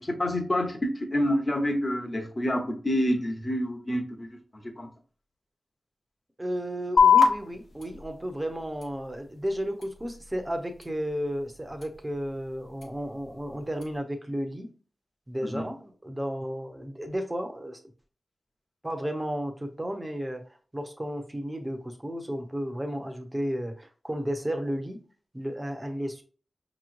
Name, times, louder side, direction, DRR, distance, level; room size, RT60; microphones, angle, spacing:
voice 1, 0.0-4.4 4.8-4.9 15.5-15.6, equal, 35° left, 4 dB, 1.0 m, -28 dB
voice 2, 6.4-14.7 15.3-17.8 18.8-20.4 20.7-25.0 25.3-26.2, equal, 20° right, 5 dB, 0.9 m, -33 dB
sound 1, 7.0-14.0, left 6 dB, 80° left, 1.0 m, -28 dB
5.4 x 3.1 x 2.6 m, 0.40 s
cardioid pair, 60°, 0 cm